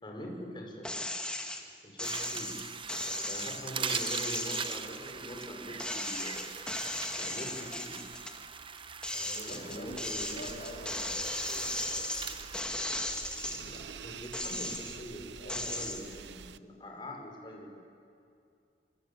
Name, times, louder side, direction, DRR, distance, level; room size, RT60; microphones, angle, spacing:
voice 1, 0.0-0.9 1.8-2.6 3.3-6.5 7.2-8.0 9.5-10.4 13.4-17.8, equal, 25° left, 0 dB, 5.3 m, -43 dB
sound 1, 0.8-1.6 2.0-5.5 5.8-8.4 8.8-13.8 14.2-15.1 15.5-16.0, left 1 dB, 5° left, 1.8 m, -36 dB
sound 2, 2.0-12.6, right 6 dB, 30° right, 0.8 m, -41 dB
voice 2, 2.9-3.2 9.1-12.2 15.4-15.8, left 1 dB, 55° left, -1 dB, 6.1 m, -46 dB
sound 3, 9.9-16.6, right 7 dB, 80° right, 0.6 m, -47 dB
26.0 x 25.0 x 8.5 m, 2.4 s
head